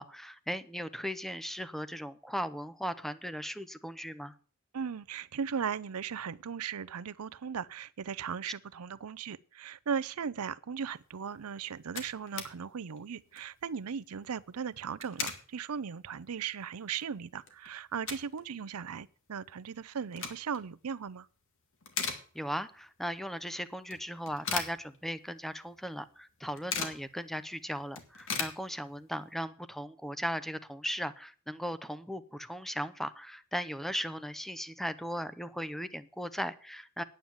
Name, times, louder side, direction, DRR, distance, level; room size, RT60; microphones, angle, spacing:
voice 1, 0.0-4.3 22.3-37.0, equal, ahead, 0.6 m, -37 dB
voice 2, 4.7-21.3, right 6 dB, 85° right, 0.6 m, -37 dB
sound 1, 11.4-11.5 11.6-12.5 12.9-13.0 13.3-13.6 14.8-15.5 16.0-16.1 16.6-16.7 17.0-18.4 18.7-18.8 19.8-20.7 21.1-21.4 21.7-22.7 23.1-23.2 23.9-25.4 25.7-25.8 26.0-27.1 27.5-27.6 27.8-29.2, left 6 dB, 65° left, 1.9 m, -38 dB
9.6 x 8.9 x 7.1 m
head